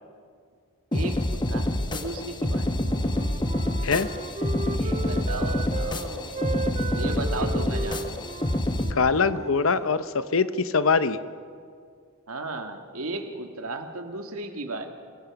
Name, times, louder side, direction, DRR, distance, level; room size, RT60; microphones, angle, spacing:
sound 1, 0.9-8.9, left 1 dB, 20° left, 1.1 m, -27 dB
voice 1, 0.9-2.8 4.7-6.5 6.9-8.3 12.3-14.9, right 2 dB, 85° right, 5 dB, 2.0 m, -35 dB
Wind instrument woodwind instrument, 2.7-6.0 6.3-10.0, right 3 dB, 30° right, 0.6 m, -36 dB
voice 2, 8.9-11.2, left 4 dB, 65° left, 13 dB, 0.9 m, -23 dB
28.0 x 19.5 x 6.0 m, 2.2 s
head